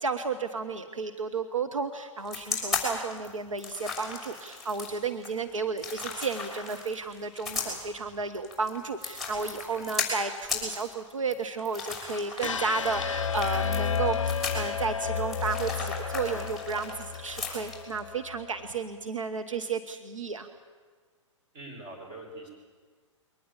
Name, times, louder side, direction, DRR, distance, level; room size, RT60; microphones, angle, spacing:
voice 1, 0.0-20.5, right 4 dB, 80° right, 7 dB, 1.2 m, -33 dB
sound 1, 2.2-18.0, left 4 dB, ahead, 6.3 m, -36 dB
sound 2, 12.4-18.5, left 6 dB, 70° left, 0.6 m, -32 dB
voice 2, 21.5-22.5, right 2 dB, 30° right, 2 dB, 6.5 m, -43 dB
22.5 x 19.0 x 8.7 m, 1.5 s
figure-of-eight pair, 115°, 16 cm